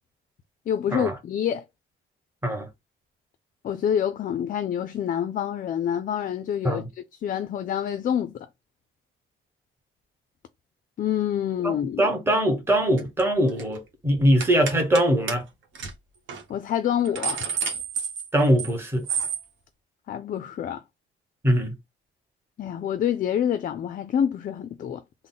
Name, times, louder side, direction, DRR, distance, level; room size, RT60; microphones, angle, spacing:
voice 1, 0.7-1.6 3.6-6.8 7.2-8.5 11.0-12.1 16.5-17.4 20.1-20.8 22.6-25.0, left 9 dB, 40° left, 0.4 m, -27 dB
voice 2, 11.6-15.4 18.3-19.0 21.4-21.7, right 1 dB, 10° right, 1.1 m, -22 dB
sound 1, 13.0-13.2 13.5-13.8 14.4-15.0 15.3-15.4 15.7-15.9 16.3-16.4 16.8-18.7 19.1-19.4, right 6 dB, 65° right, 1.2 m, -30 dB
3.7 x 2.1 x 4.0 m
cardioid pair, 165°, 21 cm